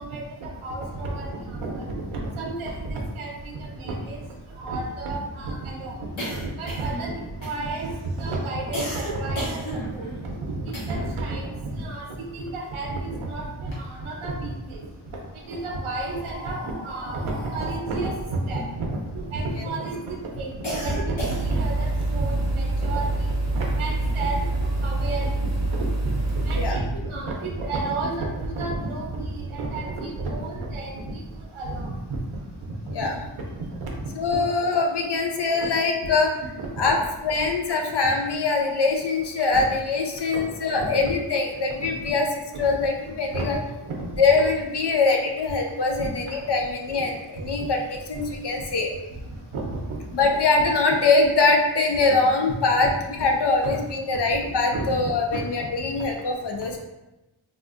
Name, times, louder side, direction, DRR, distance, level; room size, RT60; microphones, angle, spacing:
voice 1, 0.0-1.8 2.1-4.2 4.6-6.1 6.4-7.1 7.4-12.0 12.3-14.8 15.5-24.4 24.8-25.3 25.8-26.1 26.5-31.2 31.5-31.9 32.7-32.9 33.8-33.9 34.3-34.4 36.6-36.7 39.5-39.6 40.3-40.4 40.7-40.9 41.8-41.9 43.3-43.4 46.0-46.1 47.6-47.7 48.1-48.2 49.5-49.7 52.8-52.9 53.6-53.7 54.7-54.8 55.3-55.4, right 2 dB, 80° right, -1 dB, 0.6 m, -31 dB
sound 1, 3.4-3.5 3.8-11.3 11.5-13.1 13.5-14.4 15.1-19.6 20.0-21.8, equal, 75° left, 1.2 m, -35 dB
sound 2, 21.2-26.7, right 2 dB, 35° right, 0.7 m, -26 dB
voice 2, 34.1-36.3 36.8-37.0 37.2-43.6 44.2-48.9 50.1-56.8, left 3 dB, 55° left, 2 dB, 0.6 m, -23 dB
3.6 x 2.4 x 2.4 m, 1.0 s
wide cardioid pair, 75°, 49 cm